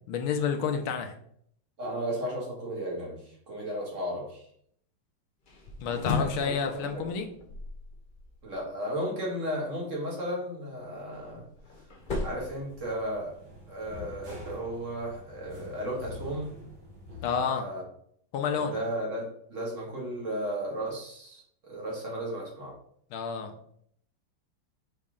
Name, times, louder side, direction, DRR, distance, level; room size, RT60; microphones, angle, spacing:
voice 1, 0.1-1.1 5.8-7.3 17.2-17.7 18.3-18.7 23.1-23.5, left 6 dB, 90° left, 5 dB, 1.6 m, -29 dB
voice 2, 1.8-4.4 6.2-6.5 6.9-7.0 8.4-11.4 12.2-13.4 13.7-16.5 17.4-17.8 18.5-22.7, equal, 40° right, -2 dB, 2.0 m, -34 dB
sound 1, 5.5-8.6 10.8-13.4, left 3 dB, 45° left, 0.6 m, -36 dB
sound 2, 12.0-17.4, left 2 dB, 55° right, 2.1 m, -46 dB
6.2 x 4.2 x 3.7 m, 0.66 s
omnidirectional pair, 2.2 m